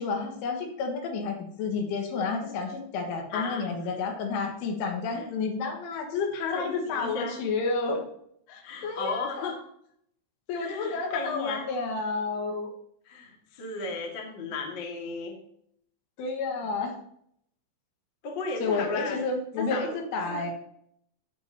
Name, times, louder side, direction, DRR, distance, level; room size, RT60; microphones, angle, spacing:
voice 1, 0.0-8.1 8.5-9.5 10.5-12.7 16.2-16.9 18.6-20.5, left 4 dB, 85° left, 2 dB, 4.1 m, -30 dB
voice 2, 3.3-3.7 5.1-5.2 6.5-7.4 8.6-9.6 10.5-11.6 13.0-15.3 18.2-19.2 19.6-19.9 20.3-20.4, left 4 dB, 60° left, 0 dB, 1.2 m, -35 dB
17.0 x 6.8 x 2.9 m, 0.69 s
omnidirectional pair, 5.6 m